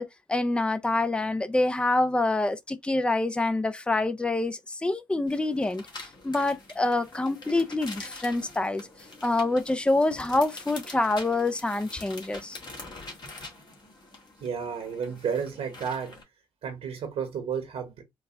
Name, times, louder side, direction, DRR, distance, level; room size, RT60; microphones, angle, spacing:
voice 1, 0.0-8.9 9.2-12.6, left 2 dB, 10° left, 0.5 m, -26 dB
sound 1, 5.3-16.2, left 2 dB, 40° left, 1.6 m, -45 dB
voice 2, 14.4-16.2 16.6-18.0, right 7 dB, 65° right, 1.1 m, -32 dB
4.0 x 2.2 x 3.4 m
hypercardioid pair, 55°, 11 cm